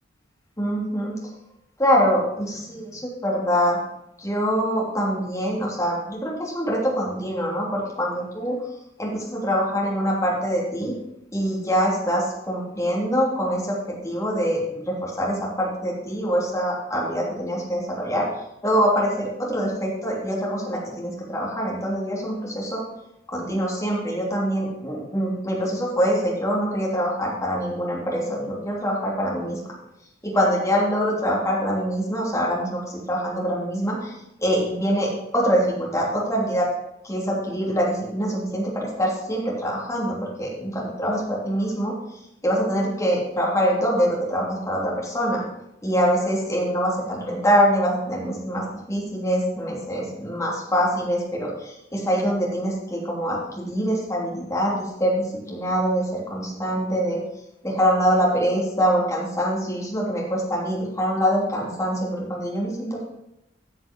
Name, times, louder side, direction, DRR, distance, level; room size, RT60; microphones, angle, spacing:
voice 1, 0.6-1.2 1.8-3.8 4.2-8.6 9.0-10.9 11.3-18.3 18.6-22.9 23.3-29.7 30.2-34.1 34.4-36.7 37.0-42.0 42.4-45.4 45.8-57.2 57.6-63.0, equal, 15° left, -4 dB, 3.1 m, -24 dB
13.5 x 5.5 x 5.4 m, 0.82 s
head